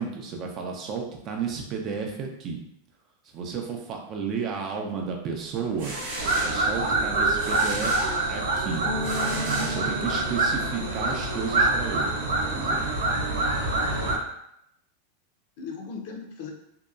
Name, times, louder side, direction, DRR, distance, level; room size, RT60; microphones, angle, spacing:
voice 1, 0.0-2.6 3.3-5.9 6.4-8.8 9.3-12.2 12.5-12.8, right 6 dB, 40° right, 2 dB, 0.5 m, -32 dB
sound 1, 5.5-10.4, right 1 dB, 70° right, 0.9 m, -37 dB
sound 2, 6.2-14.2, right 2 dB, 90° right, 0.6 m, -26 dB
Bass guitar, 8.8-12.0, left 4 dB, 5° left, 0.6 m, -37 dB
voice 2, 9.3-9.7 12.5-13.4 15.6-16.5, left 4 dB, 60° left, 1 dB, 0.5 m, -40 dB
2.7 x 2.2 x 2.4 m, 0.77 s
supercardioid pair, 125°, 0 cm